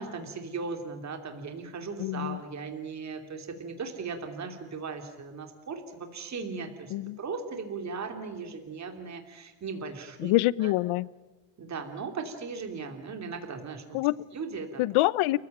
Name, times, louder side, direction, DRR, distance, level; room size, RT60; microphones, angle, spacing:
voice 1, 0.0-10.3 10.6-10.7 11.6-14.0 14.3-14.8, right 4 dB, 35° right, 5 dB, 2.9 m, -37 dB
voice 2, 2.0-2.4 6.9-7.2 10.2-11.1 13.9-14.3 14.8-15.4, left 18 dB, 85° left, 21 dB, 0.8 m, -26 dB
29.5 x 15.5 x 8.9 m, 1.2 s
cardioid pair, 150°, 48 cm